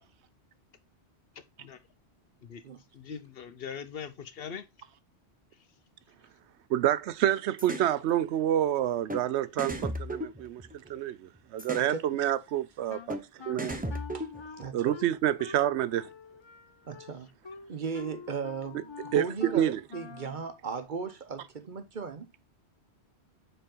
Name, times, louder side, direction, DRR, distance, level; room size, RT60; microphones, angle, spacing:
voice 1, 2.9-4.6, left 7 dB, 60° left, 0.9 m, -41 dB
voice 2, 6.7-13.7 14.7-16.1 19.1-19.3 19.5-19.8, right 11 dB, 80° right, 0.8 m, -28 dB
sound 1, 7.6-7.9 9.1-9.2 9.6-11.0 11.6-11.9 13.1-13.2 13.6-14.7, equal, 10° right, 0.6 m, -35 dB
Wind instrument woodwind instrument, 12.9-20.4, left 5 dB, 35° left, 0.5 m, -46 dB
voice 3, 14.6-14.9 16.9-17.3 17.7-22.3, right 5 dB, 50° right, 0.9 m, -37 dB
6.8 x 4.5 x 3.8 m
omnidirectional pair, 1.1 m